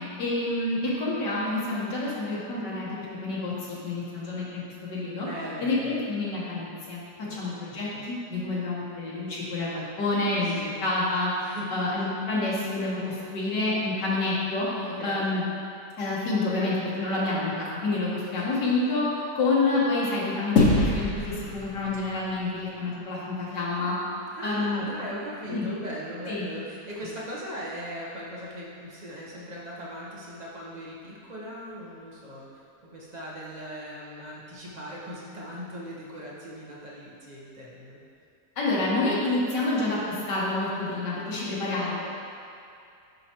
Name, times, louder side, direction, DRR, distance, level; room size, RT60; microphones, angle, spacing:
voice 1, 0.0-5.3 5.6-7.0 7.3-15.4 16.0-19.1 19.3-24.0 24.4-24.8 25.5-25.7 26.3-26.4 38.6-42.0, left 2 dB, 80° left, -7 dB, 1.9 m, -28 dB
voice 2, 5.2-6.0 7.2-8.1 10.4-10.8 11.4-11.8 14.8-15.3 18.6-18.8 23.1-23.3 24.4-32.6 32.9-38.0 41.5-41.7, equal, 30° right, -5 dB, 0.8 m, -39 dB
sound 1, 20.6-23.2, left 2 dB, 60° left, 1.0 m, -26 dB
7.8 x 5.7 x 2.9 m, 2.5 s
omnidirectional pair, 1.8 m